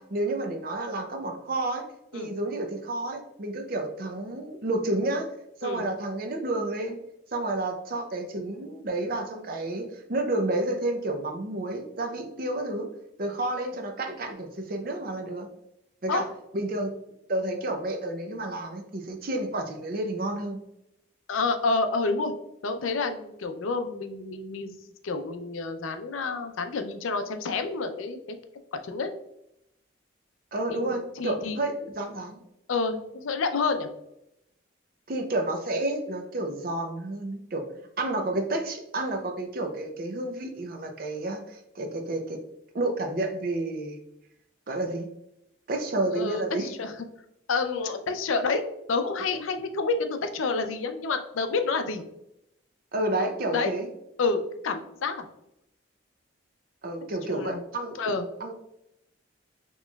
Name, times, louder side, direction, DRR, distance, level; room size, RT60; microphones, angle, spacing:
voice 1, 0.0-1.8 2.1-5.3 5.6-7.0 7.3-12.9 13.2-15.5 16.0-16.2 16.5-16.9 17.3-20.6 30.5-32.4 35.1-37.6 38.0-42.4 42.7-44.0 44.7-45.1 45.7-46.7 52.9-53.9 56.8-58.0 58.4-58.5, right 2 dB, 45° right, 5 dB, 0.5 m, -30 dB
voice 2, 21.3-22.3 22.6-24.7 25.0-28.2 28.7-29.1 30.7-31.6 32.7-33.9 46.1-46.9 47.5-48.6 48.9-52.0 53.5-53.7 54.2-55.3 57.3-57.6 58.0-58.2, left 4 dB, 90° left, 8 dB, 0.5 m, -29 dB
4.3 x 3.0 x 2.3 m, 0.82 s
head